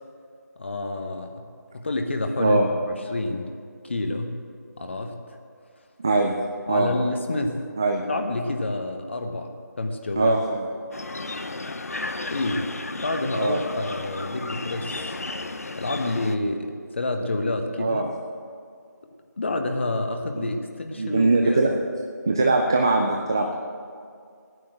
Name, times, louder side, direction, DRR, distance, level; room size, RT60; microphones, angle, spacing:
voice 1, 0.6-1.4 1.7-3.5 3.8-4.4 4.8-5.2 6.7-7.6 8.0-9.5 9.8-10.3 12.3-12.7 12.9-15.2 15.7-18.1 19.4-21.7, left 2 dB, 40° left, 5 dB, 1.2 m, -28 dB
voice 2, 6.0-6.4 6.7-6.9 7.8-8.0 10.2-10.7 13.3-13.6 17.8-18.1 20.3-20.6 21.0-21.7 22.3-23.5, right 3 dB, 15° right, 2 dB, 0.3 m, -21 dB
sound 1, 10.9-16.4, left 2 dB, 55° left, 0.8 m, -34 dB
13.0 x 9.5 x 7.7 m, 2.2 s
figure-of-eight pair, 165°, 10 cm